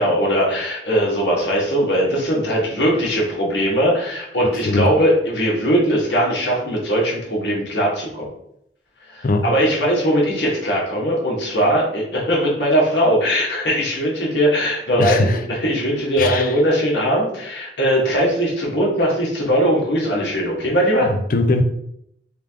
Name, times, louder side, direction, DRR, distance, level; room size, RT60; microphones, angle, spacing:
voice 1, 0.0-8.3 9.1-21.1, equal, 75° left, -4 dB, 1.4 m, -20 dB
voice 2, 15.0-15.4 16.2-16.6 21.0-21.6, left 2 dB, 50° left, 6 dB, 0.5 m, -20 dB
3.5 x 3.4 x 3.5 m, 0.75 s
head